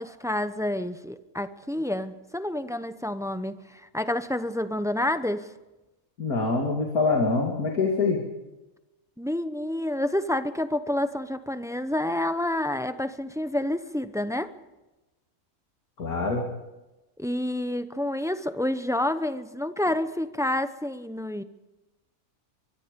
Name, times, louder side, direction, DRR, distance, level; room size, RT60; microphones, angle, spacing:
voice 1, 0.0-5.5 9.2-14.5 17.2-21.4, left 1 dB, 5° right, 11 dB, 0.5 m, -29 dB
voice 2, 6.2-8.2 16.0-16.4, left 3 dB, 80° left, 1 dB, 2.9 m, -24 dB
23.5 x 23.0 x 5.3 m, 1.0 s
omnidirectional pair, 1.5 m